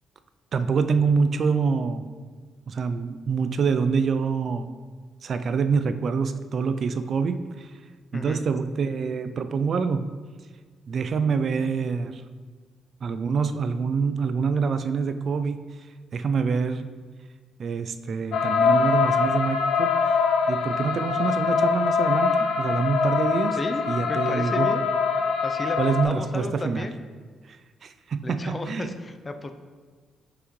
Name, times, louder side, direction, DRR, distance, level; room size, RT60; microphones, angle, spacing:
voice 1, 0.5-2.0 2.7-4.7 5.2-7.8 8.1-10.1 10.9-12.2 13.0-15.6 16.1-16.9 17.6-20.2 20.5-23.6 23.9-24.7 25.8-26.8 27.5-27.6 27.8-28.9, right 5 dB, 55° right, 10 dB, 0.3 m, -26 dB
voice 2, 8.1-8.4 23.5-24.8 25.4-27.0 28.2-29.5, left 2 dB, 25° left, 7 dB, 0.5 m, -33 dB
sound 1, 18.3-26.0, left 5 dB, 75° left, 0.5 m, -23 dB
6.1 x 5.8 x 3.1 m, 1.5 s
cardioid pair, 90°, 0 cm